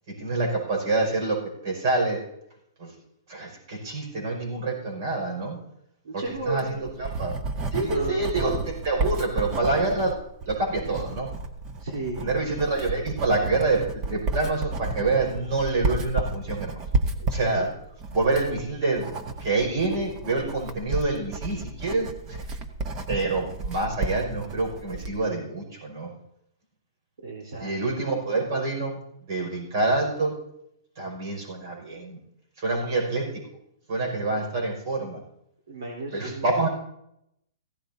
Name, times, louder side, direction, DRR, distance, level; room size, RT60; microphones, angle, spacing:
voice 1, 0.1-2.2 2.8-2.9 3.3-5.6 6.1-7.4 7.7-10.1 10.5-11.3 12.2-16.8 17.3-17.7 18.1-19.1 19.4-22.4 23.1-26.1 27.6-29.0 29.3-30.3 31.0-32.2 32.6-33.3 33.9-35.2 36.1-36.7, right 3 dB, 50° right, 1 dB, 5.5 m, -27 dB
voice 2, 6.0-7.2 7.7-8.4 11.8-12.3 27.2-27.7 35.7-36.5, right 2 dB, 85° right, -2 dB, 3.7 m, -34 dB
Writing, 6.4-25.2, right 3 dB, 25° right, 1.0 m, -32 dB
16.0 x 13.5 x 2.7 m, 0.78 s
hypercardioid pair, 155°, 2 cm